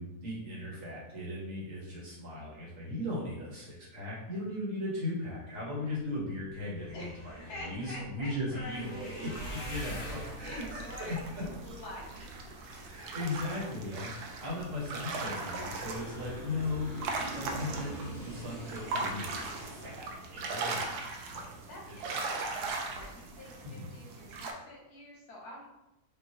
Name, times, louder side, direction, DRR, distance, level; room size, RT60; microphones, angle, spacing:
voice 1, 0.0-11.5 12.8-16.9 17.3-21.0 21.3-21.5 21.9-22.3 23.6-23.9, left 1 dB, 55° right, -5 dB, 1.6 m, -38 dB
sound 1, 6.5-12.9 13.4-13.9 14.3-14.5 14.8-14.9, left 1 dB, 55° left, 1.6 m, -47 dB
voice 2, 6.9-12.3 12.7-13.2 21.5-25.7, left 1 dB, 80° left, -2 dB, 1.7 m, -48 dB
sound 2, 9.3-24.5, right 3 dB, 80° right, 1.2 m, -39 dB
Aircraft, 10.6-21.7, right 1 dB, 35° right, 1.2 m, -48 dB
5.5 x 2.8 x 2.8 m, 0.92 s
omnidirectional pair, 1.6 m